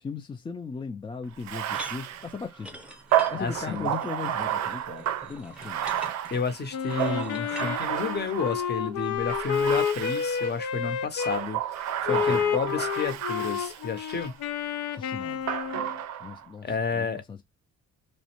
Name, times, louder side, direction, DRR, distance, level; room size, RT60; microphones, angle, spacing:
voice 1, 0.0-2.8 3.3-5.9 12.3-12.5 14.9-15.4 16.2-17.4, left 5 dB, 15° left, 0.3 m, -38 dB
Bathtub (filling or washing), 1.4-8.7 9.3-10.6 11.1-14.3 15.5-16.4, right 11 dB, 65° right, 0.4 m, -31 dB
sound 1, 1.7-7.7, equal, 5° right, 0.7 m, -45 dB
voice 2, 3.4-3.9 6.3-14.3 16.6-17.2, left 5 dB, 35° left, 0.7 m, -31 dB
Wind instrument woodwind instrument, 6.7-11.4 12.1-16.0, left 7 dB, 85° left, 0.6 m, -30 dB
2.5 x 2.1 x 2.8 m
cardioid pair, 90°, 30 cm